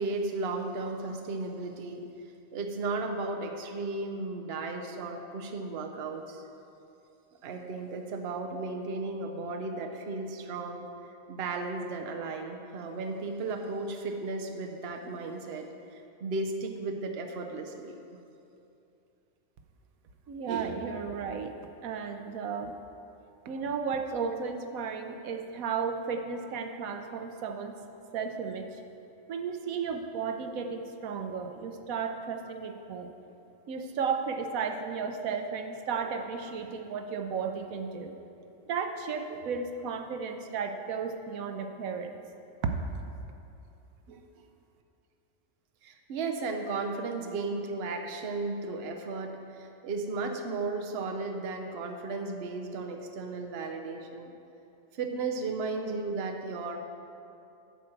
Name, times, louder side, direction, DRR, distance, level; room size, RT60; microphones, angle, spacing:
voice 1, 0.0-2.0 2.5-6.4 7.4-10.9 11.3-18.2 45.8-54.3 54.9-56.8, right 3 dB, 55° right, 4 dB, 0.9 m, -35 dB
voice 2, 20.3-21.5 21.8-22.7 23.5-27.8 28.1-28.8 29.3-33.1 33.7-38.2 38.7-42.2 42.6-42.8 44.1-44.2, right 5 dB, 85° right, 6 dB, 1.1 m, -34 dB
11.5 x 4.5 x 7.8 m, 2.7 s
omnidirectional pair, 1.4 m